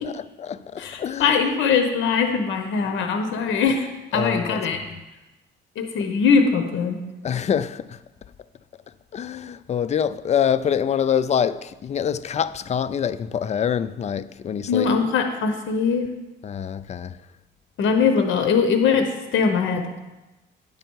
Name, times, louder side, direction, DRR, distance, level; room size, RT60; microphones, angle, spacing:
voice 1, 0.0-1.4 4.1-4.8 7.2-8.0 9.1-14.9 16.4-17.2, left 8 dB, 35° left, 0.4 m, -25 dB
voice 2, 0.8-4.8 5.8-7.0 14.7-16.1 17.8-19.9, left 5 dB, 75° left, 0.9 m, -21 dB
10.0 x 6.8 x 4.6 m
cardioid pair, 90°, 20 cm